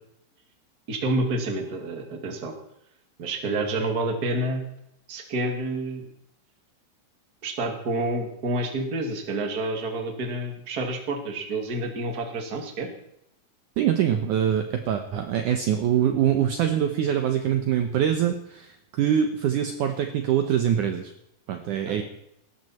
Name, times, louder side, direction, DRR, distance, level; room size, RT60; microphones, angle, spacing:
voice 1, 0.9-2.5 3.2-4.7 5.1-6.1 7.4-12.9 21.7-22.0, right 2 dB, 30° right, 4 dB, 2.0 m, -29 dB
voice 2, 13.8-21.1 21.5-22.0, right 9 dB, 70° right, 6 dB, 2.1 m, -24 dB
18.5 x 13.0 x 4.3 m, 0.77 s
omnidirectional pair, 4.5 m